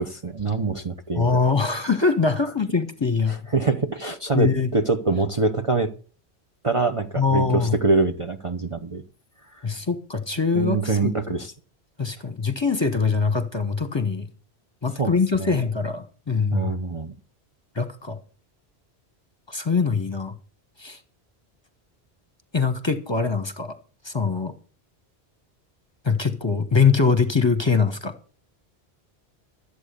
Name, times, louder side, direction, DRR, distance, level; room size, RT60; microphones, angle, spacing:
voice 1, 0.0-1.4 3.5-5.9 6.6-9.0 9.5-9.6 10.5-11.5 15.0-15.1 15.4-15.6 16.5-17.2, right 3 dB, 30° right, 0.9 m, -24 dB
voice 2, 1.1-3.3 4.3-4.7 7.2-7.7 9.6-11.1 12.0-14.3 14.8-16.7 17.7-18.2 19.5-20.3 20.8-21.0 22.5-23.8 24.0-24.5 26.0-28.1, left 5 dB, 25° left, 1.3 m, -23 dB
13.5 x 8.3 x 6.7 m
omnidirectional pair, 1.1 m